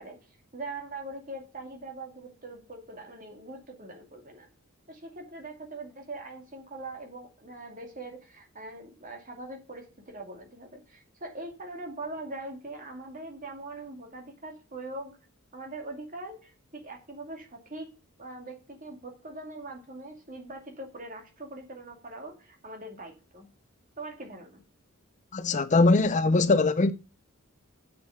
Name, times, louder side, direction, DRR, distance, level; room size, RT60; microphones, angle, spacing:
voice 1, 0.0-4.5 4.9-15.2 15.5-17.9 18.2-23.5 24.0-24.6, right 2 dB, 40° right, 2.3 m, -42 dB
voice 2, 25.3-26.9, left 3 dB, 35° left, 0.5 m, -21 dB
7.4 x 7.0 x 6.4 m
head